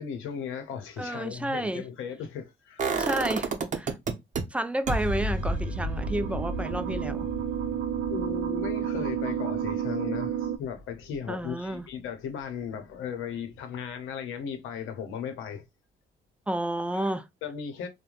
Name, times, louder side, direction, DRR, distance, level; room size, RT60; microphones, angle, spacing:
voice 1, 0.0-2.8 8.1-15.6 16.9-17.1 17.4-17.9, left 7 dB, 90° left, 0.7 m, -36 dB
voice 2, 1.0-1.9 2.9-3.9 4.5-7.3 11.3-11.8 16.5-17.3, right 1 dB, 5° right, 0.3 m, -31 dB
sound 1, 2.8-4.4 4.9-10.7 11.0-11.1, right 2 dB, 40° right, 0.7 m, -32 dB
sound 2, 5.4-10.6, right 9 dB, 85° right, 0.4 m, -31 dB
3.1 x 2.1 x 2.5 m
cardioid pair, 90°, 20 cm